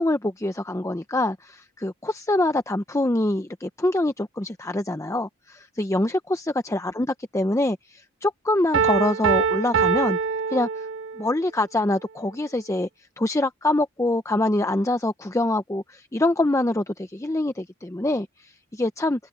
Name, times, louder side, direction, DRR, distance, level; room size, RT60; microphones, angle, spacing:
voice 1, 0.0-10.2 10.5-10.9 11.2-12.9 13.2-19.2, left 1 dB, 15° left, 0.7 m, -25 dB
Piano, 8.7-11.3, right 6 dB, 65° right, 1.3 m, -23 dB
open air
head